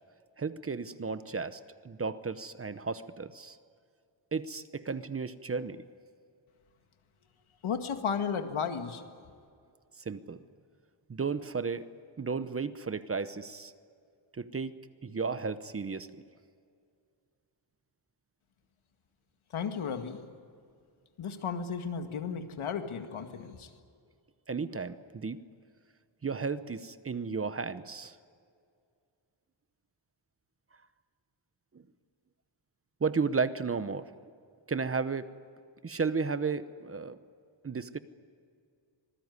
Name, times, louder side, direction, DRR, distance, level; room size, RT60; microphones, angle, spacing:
voice 1, 0.4-3.6 4.3-5.8 10.0-10.4 11.1-11.8 12.2-13.7 14.3-14.8 15.0-16.1 24.5-25.4 26.2-28.2 31.7-31.9 33.0-34.1 34.7-35.3 35.8-37.2 37.6-38.0, right 5 dB, 30° right, 12 dB, 0.8 m, -33 dB
voice 2, 7.6-9.0 19.5-20.2 21.2-23.7, left 6 dB, 85° left, 6 dB, 2.1 m, -34 dB
26.0 x 20.5 x 9.7 m, 2.3 s
wide cardioid pair, 165°, 48 cm